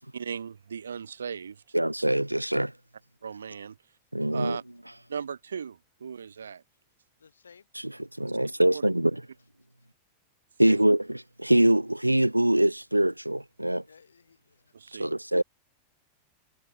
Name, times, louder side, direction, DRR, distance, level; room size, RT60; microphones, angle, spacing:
voice 1, 0.1-1.6 3.2-3.8 4.3-4.6 5.1-6.6 8.2-8.3 8.7-8.9 10.7-10.8 14.7-15.1, right 6 dB, 70° right, 7.7 m, -37 dB
voice 2, 1.7-2.7 4.1-4.6 7.7-9.2 10.6-13.8 15.0-15.4, right 1 dB, 85° right, 1.2 m, -24 dB
voice 3, 7.2-7.7 13.9-14.7, left 6 dB, 75° left, 5.0 m, -56 dB
figure-of-eight pair, 90°, 0 cm